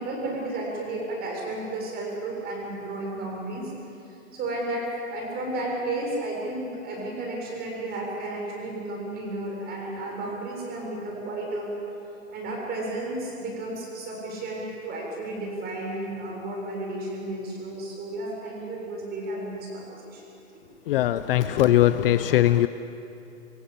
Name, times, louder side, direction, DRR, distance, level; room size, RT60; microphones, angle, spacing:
voice 1, 0.0-3.7 4.3-11.7 12.3-20.2, right 2 dB, 25° right, -1 dB, 7.2 m, -33 dB
voice 2, 20.9-22.7, left 13 dB, 45° left, 13 dB, 0.7 m, -20 dB
26.5 x 17.5 x 8.4 m, 2.8 s
hypercardioid pair, 140°, 39 cm